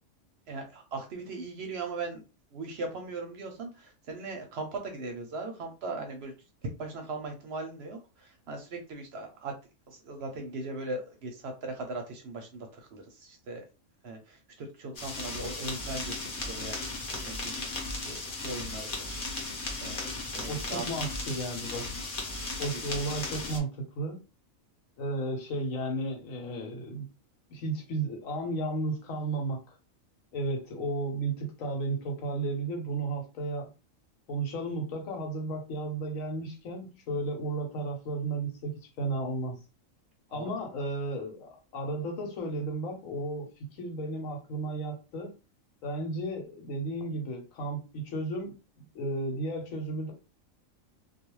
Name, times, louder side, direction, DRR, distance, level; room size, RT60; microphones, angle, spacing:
voice 1, 0.5-2.2 2.5-6.3 6.8-9.5 9.9-13.6 14.0-16.9 17.2-17.8 18.0-19.2 19.8-20.8 22.6-22.8 40.3-40.5, right 3 dB, 65° right, 3 dB, 0.7 m, -39 dB
sound 1, 14.9-23.6, left 2 dB, 45° left, 0.8 m, -36 dB
voice 2, 20.5-21.9 22.6-24.2 25.0-27.1 27.5-29.8 30.3-33.7 34.3-38.7 39.0-39.6 40.3-45.3 45.8-48.5 48.9-50.1, right 2 dB, 80° left, 2 dB, 1.2 m, -33 dB
2.3 x 2.3 x 3.0 m, 0.31 s
omnidirectional pair, 1.4 m